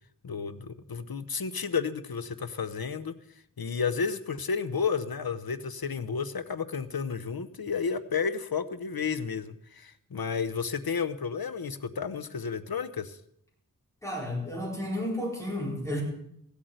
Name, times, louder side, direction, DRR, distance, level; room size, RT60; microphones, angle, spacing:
voice 1, 0.2-3.2 3.6-13.2, left 6 dB, 85° left, 12 dB, 0.8 m, -32 dB
voice 2, 14.0-16.0, left 1 dB, 10° left, -2 dB, 4.3 m, -32 dB
16.0 x 8.4 x 7.7 m, 0.72 s
wide cardioid pair, 45°, 35 cm